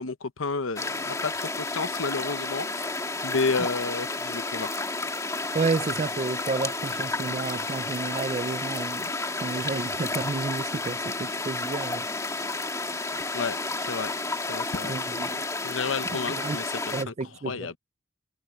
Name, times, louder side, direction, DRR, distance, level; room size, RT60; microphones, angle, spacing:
voice 1, 0.0-4.7 13.3-13.6 13.9-14.1 14.5-16.7 17.1-17.2 17.4-17.7, left 4 dB, 85° left, 0.9 m, -31 dB
sound 1, 0.8-17.0, left 3 dB, 15° left, 2.7 m, -31 dB
voice 2, 5.5-9.1 9.4-12.1 14.8-15.3 16.3-16.6 16.9-17.7, right 4 dB, 35° right, 0.4 m, -31 dB
head